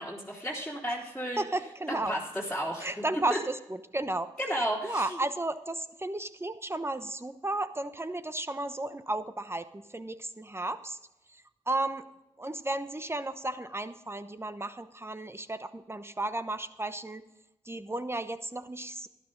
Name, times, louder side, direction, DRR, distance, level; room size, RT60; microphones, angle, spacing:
voice 1, 0.0-1.4 1.9-2.9 3.3-3.4 4.4-5.2, equal, ahead, -6 dB, 3.4 m, -33 dB
voice 2, 1.4-2.2 2.8-11.0 11.3-12.0 12.4-17.2 17.6-19.1, right 2 dB, 20° right, 11 dB, 1.0 m, -34 dB
12.0 x 10.5 x 3.9 m, 0.97 s
supercardioid pair, 40°, 13 cm